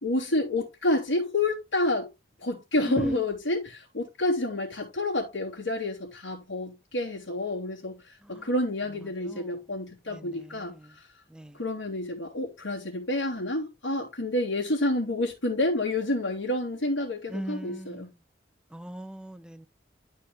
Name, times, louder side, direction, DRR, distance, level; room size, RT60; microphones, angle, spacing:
voice 1, 0.0-2.1 2.4-11.1 11.5-18.1, left 2 dB, 85° left, 3.0 m, -29 dB
voice 2, 2.8-3.2 8.2-8.5 9.2-9.5 10.1-10.9 11.3-11.6 17.3-18.1 18.7-19.7, equal, 5° right, 0.5 m, -37 dB
12.5 x 4.4 x 3.4 m
head